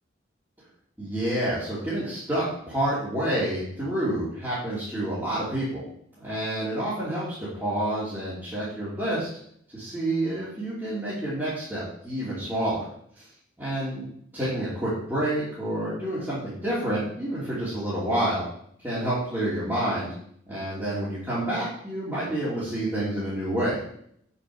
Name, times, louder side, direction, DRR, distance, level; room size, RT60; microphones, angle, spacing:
voice 1, 1.0-5.8 6.2-9.3 9.7-12.8 13.2-13.3 13.6-14.1 14.3-18.4 18.8-20.1 20.5-23.9, right 1 dB, 10° right, -12 dB, 2.9 m, -28 dB
7.8 x 6.0 x 4.8 m, 0.68 s
head